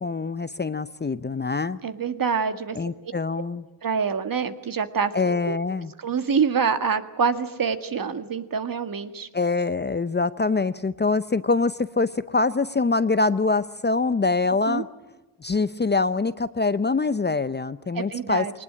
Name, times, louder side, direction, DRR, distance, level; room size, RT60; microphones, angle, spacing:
voice 1, 0.0-1.8 2.7-3.6 5.1-5.9 9.3-14.9 15.4-18.4, left 3 dB, 25° left, 14 dB, 0.7 m, -24 dB
voice 2, 1.8-2.8 3.8-5.6 6.0-9.3 14.7-14.8 18.0-18.5, right 6 dB, 50° right, 9 dB, 1.9 m, -26 dB
22.0 x 19.5 x 9.8 m, 1.1 s
cardioid pair, 85°, 44 cm